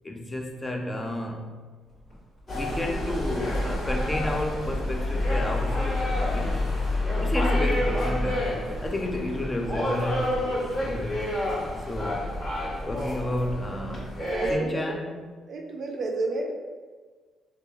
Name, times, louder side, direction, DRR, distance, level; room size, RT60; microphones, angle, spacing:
voice 1, 0.0-1.6 2.5-6.7 7.2-11.2 11.8-12.3 12.8-14.2 14.5-15.3, left 1 dB, 20° left, 2 dB, 0.3 m, -32 dB
sound 1, 1.8-14.0, left 1 dB, 60° left, 1.1 m, -43 dB
sound 2, 2.5-14.6, left 1 dB, 40° left, 1.2 m, -28 dB
voice 2, 14.2-14.8 15.5-16.5, right 3 dB, 55° right, 2 dB, 0.4 m, -30 dB
3.0 x 2.3 x 2.3 m, 1.5 s
cardioid pair, 90°, 0 cm